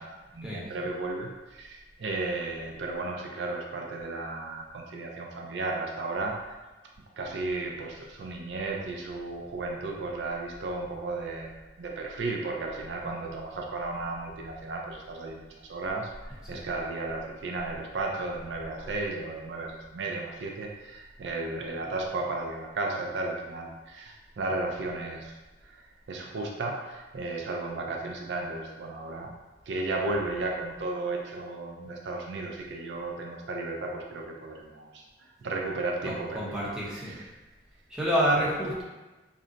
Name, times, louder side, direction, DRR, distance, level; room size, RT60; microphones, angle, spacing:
voice 1, 0.0-6.6 7.2-16.1 16.5-25.3 25.6-25.8 26.1-29.3 29.7-35.0 35.4-36.6 36.9-37.3, right 2 dB, 70° right, 0 dB, 0.4 m, -34 dB
voice 2, 36.0-37.2 37.9-38.8, equal, 5° right, -7 dB, 0.7 m, -28 dB
2.5 x 2.1 x 3.8 m, 1.1 s
head